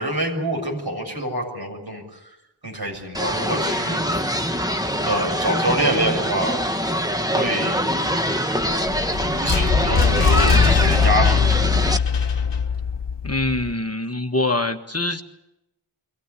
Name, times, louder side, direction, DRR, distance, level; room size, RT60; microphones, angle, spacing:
voice 1, 0.0-2.3 2.6-4.3 5.0-6.6 7.3-7.8 9.3-11.4, right 1 dB, 50° right, 2 dB, 7.1 m, -26 dB
sound 1, 3.1-12.0, equal, 10° right, 1.1 m, -24 dB
sound 2, 8.6-13.7, left 5 dB, 60° left, 1.1 m, -20 dB
voice 2, 13.2-15.2, left 2 dB, 30° left, 5 dB, 1.4 m, -24 dB
24.0 x 16.5 x 9.7 m, 0.90 s
wide cardioid pair, 40°, 47 cm